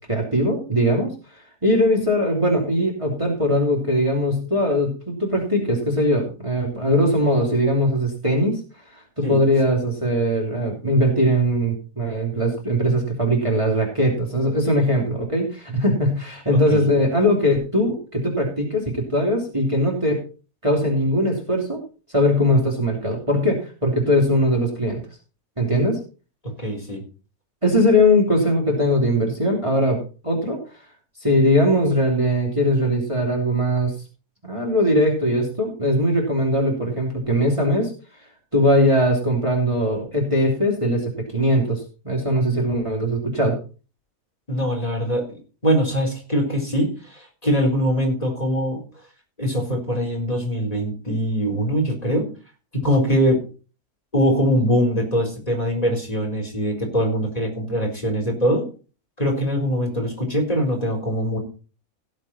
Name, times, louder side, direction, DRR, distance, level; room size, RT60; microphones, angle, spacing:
voice 1, 0.1-1.1 1.6-8.6 9.2-20.2 20.6-21.8 22.1-25.0 25.6-26.0 27.6-30.6 31.2-33.9 34.4-37.9 38.5-43.6, equal, 20° right, -1 dB, 3.0 m, -20 dB
voice 2, 26.6-27.0 44.5-45.4 45.6-48.8 49.4-52.3 52.7-53.4 54.1-58.6 59.2-61.4, equal, 25° left, 0 dB, 4.1 m, -22 dB
17.0 x 7.4 x 4.2 m, 0.35 s
omnidirectional pair, 1.6 m